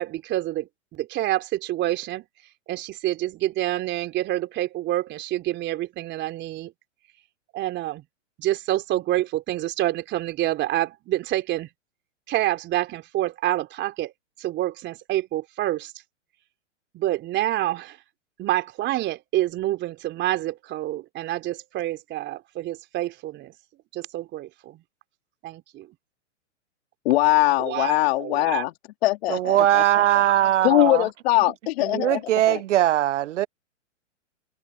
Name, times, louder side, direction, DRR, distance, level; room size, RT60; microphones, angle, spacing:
voice 1, 0.0-2.3 2.7-6.7 7.5-8.0 8.4-11.7 12.3-14.1 14.4-15.9 16.9-18.0 18.4-23.5 23.9-24.8 25.4-25.9 27.6-28.7, right 15 dB, 30° right, 3.9 m, -27 dB
voice 2, 27.0-28.7 29.0-29.8 30.6-32.2 32.5-32.6, left 17 dB, 50° left, 2.6 m, -21 dB
voice 3, 29.3-31.1 31.9-33.5, right 13 dB, 70° right, 0.6 m, -20 dB
hypercardioid pair, 130°, 38 cm